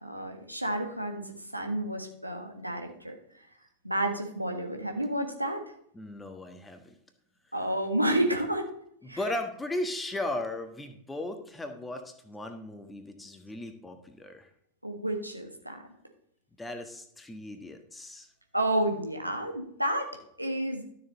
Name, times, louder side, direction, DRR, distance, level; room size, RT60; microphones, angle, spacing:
voice 1, 0.0-3.2 3.8-5.6 7.5-8.7 9.1-9.2 14.8-15.8 18.5-20.8, right 1 dB, 85° right, 3 dB, 1.4 m, -30 dB
voice 2, 5.9-7.0 7.5-7.6 9.0-14.5 16.6-18.3, left 1 dB, 10° left, 6 dB, 1.4 m, -37 dB
12.5 x 6.8 x 4.0 m, 0.69 s
figure-of-eight pair, 90°, 0 cm